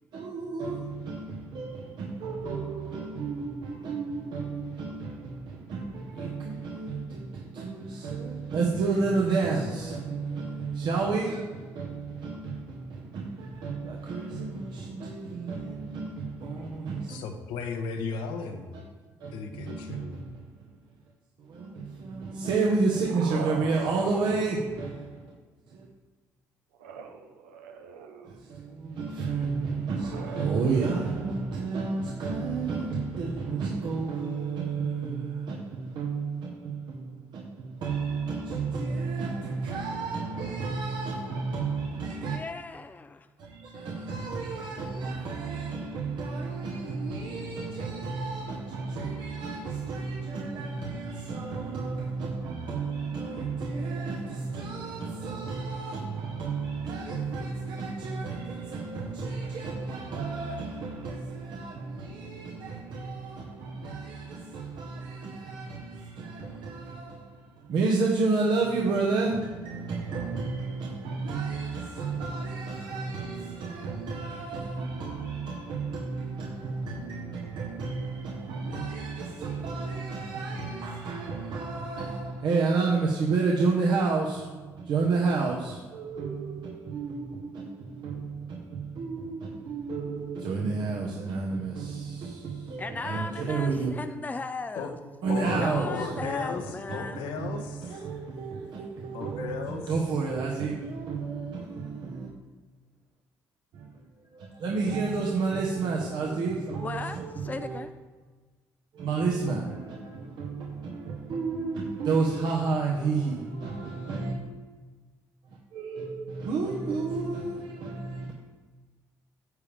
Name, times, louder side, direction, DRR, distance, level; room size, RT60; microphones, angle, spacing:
voice 1, 0.1-17.2 19.2-20.7 21.4-25.2 25.7-25.9 28.2-42.4 43.4-93.9 95.2-96.5 96.9-102.3 103.7-104.0 104.3-107.8 108.9-114.3 115.4-118.3, right 4 dB, 65° right, 1.3 m, -31 dB
voice 2, 17.1-18.7 19.3-20.2 94.7-94.9 95.3-98.1 99.1-99.8, left 5 dB, 80° left, 1.1 m, -35 dB
sound 1, 22.8-25.2 26.7-28.5 29.9-30.4, right 6 dB, 90° right, 0.7 m, -41 dB
voice 3, 42.2-43.3 92.8-95.0 95.6-97.3 106.8-107.9, left 3 dB, 20° left, 0.5 m, -36 dB
9.5 x 7.0 x 3.5 m
hypercardioid pair, 55°, 8 cm